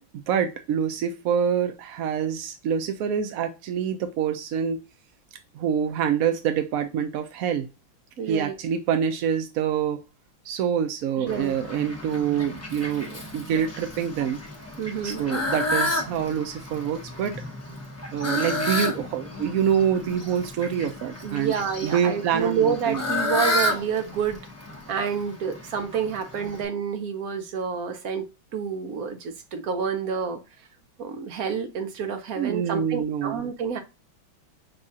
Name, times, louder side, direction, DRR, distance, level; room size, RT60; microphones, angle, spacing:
voice 1, 0.0-4.8 5.5-7.7 8.3-10.0 10.5-14.4 15.0-17.4 18.1-21.5 21.8-23.0 32.4-33.5, right 8 dB, 80° right, 0.7 m, -26 dB
voice 2, 8.2-8.5 11.2-11.5 14.8-15.2 21.2-24.4 24.9-30.4 31.0-33.8, right 6 dB, 60° right, 1.0 m, -28 dB
Fowl, 11.3-26.6, left 1 dB, 25° left, 0.3 m, -31 dB
6.4 x 2.4 x 2.7 m
omnidirectional pair, 2.2 m